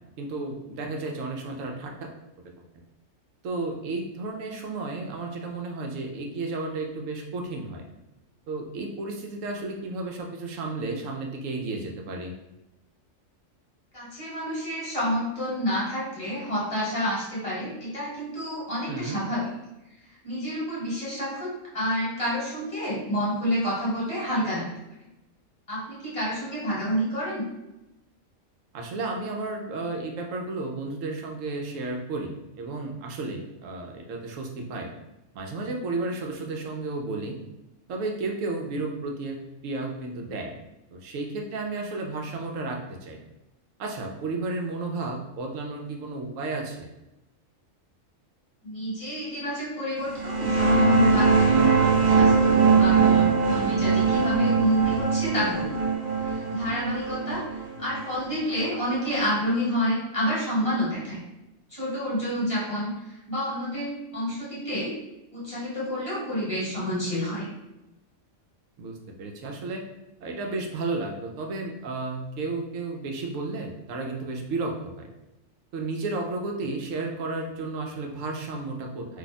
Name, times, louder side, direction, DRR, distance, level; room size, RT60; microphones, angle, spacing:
voice 1, 0.2-2.1 2.7-2.8 3.4-7.8 8.5-12.3 18.9-19.2 28.7-34.9 35.3-37.4 37.9-39.4 39.6-40.6 40.9-43.2 43.8-46.9 51.4-51.8 68.8-69.8 70.2-75.1 75.7-79.2, right 3 dB, 80° right, 2 dB, 1.0 m, -33 dB
voice 2, 13.9-19.5 20.2-24.7 25.7-27.4 48.6-51.6 52.1-55.8 56.3-61.2 61.7-64.9 65.3-67.5, equal, 25° left, -7 dB, 1.2 m, -29 dB
sound 1, 50.1-59.4, right 4 dB, 60° right, 1.1 m, -22 dB
2.6 x 2.3 x 4.0 m, 0.95 s
omnidirectional pair, 1.3 m